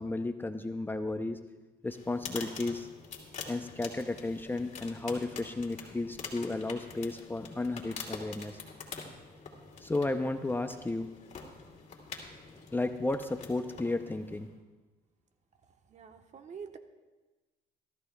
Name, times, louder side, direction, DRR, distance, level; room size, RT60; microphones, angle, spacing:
voice 1, 0.0-1.4 1.8-2.9 3.5-8.6 9.8-11.1 12.7-14.5, left 2 dB, 10° left, 7 dB, 0.6 m, -33 dB
sound 1, 1.9-14.5, left 5 dB, 45° left, 2.5 m, -46 dB
voice 2, 15.9-16.8, right 6 dB, 45° right, 6 dB, 1.1 m, -46 dB
24.0 x 13.5 x 2.3 m, 1.2 s
cardioid pair, 110°, 17 cm